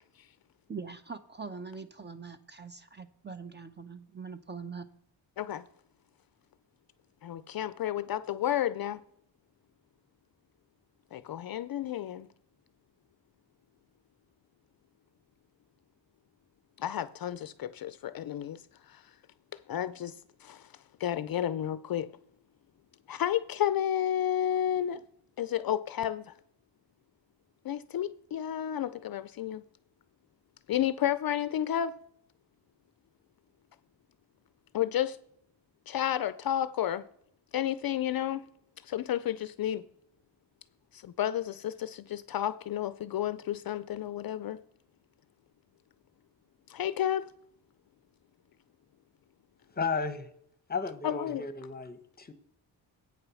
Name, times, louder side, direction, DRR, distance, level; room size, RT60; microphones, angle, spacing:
voice 1, 0.7-4.9, right 5 dB, 25° right, 0.7 m, -42 dB
voice 2, 7.2-9.0 11.1-12.3 16.8-18.6 18.9-19.0 19.7-20.7 21.0-22.1 23.1-25.0 25.4-26.3 27.6-29.6 30.7-32.0 34.7-35.2 35.9-37.0 37.5-38.4 38.8-39.8 40.9-44.6 46.7-47.3 51.0-51.4, left 11 dB, 50° left, 0.5 m, -31 dB
voice 3, 49.7-50.3 50.7-52.3, left 4 dB, 20° left, 1.0 m, -34 dB
8.7 x 6.3 x 6.2 m
cardioid pair, 115°, 45 cm